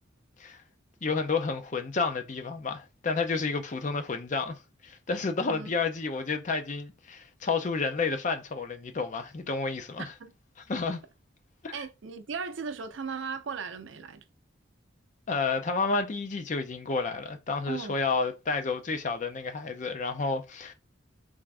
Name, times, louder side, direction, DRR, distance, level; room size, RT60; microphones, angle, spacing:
voice 1, 1.0-10.1 10.7-11.0 11.6-11.8 15.3-20.7, left 4 dB, 40° left, 0.5 m, -30 dB
voice 2, 10.0-10.3 11.7-14.2 17.7-18.0, right 5 dB, 70° right, 0.5 m, -37 dB
3.5 x 2.5 x 3.3 m
head